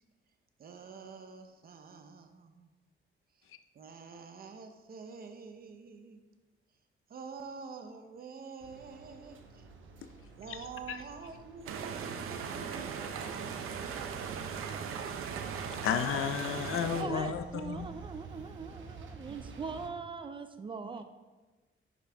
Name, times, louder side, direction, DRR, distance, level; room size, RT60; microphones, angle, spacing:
voice 1, 0.6-2.7 3.4-3.5 3.7-6.2 7.1-9.7 10.4-14.1 16.9-17.3 20.8-21.0, right 5 dB, 45° right, 0.8 m, -47 dB
sound 1, 8.6-19.9, right 4 dB, 65° right, 1.0 m, -50 dB
sound 2, 11.7-17.0, right 6 dB, 90° right, 0.7 m, -38 dB
voice 2, 15.8-17.9, left 8 dB, 80° left, 0.6 m, -32 dB
voice 3, 16.7-21.0, right 4 dB, 25° right, 0.3 m, -41 dB
10.5 x 6.4 x 3.4 m
wide cardioid pair, 170°, 21 cm